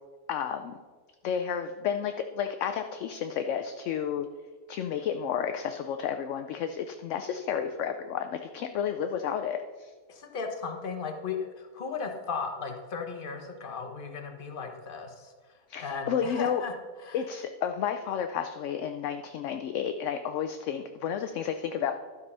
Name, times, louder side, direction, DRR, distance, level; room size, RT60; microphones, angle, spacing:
voice 1, 0.3-0.7 1.2-4.3 4.7-9.9 15.7-16.6 17.1-21.9, left 8 dB, 70° left, 7 dB, 0.8 m, -31 dB
voice 2, 10.1-15.3 15.8-16.7 17.0-17.2, left 5 dB, 40° left, 4 dB, 1.1 m, -36 dB
12.0 x 5.4 x 5.4 m, 1.5 s
omnidirectional pair, 1.6 m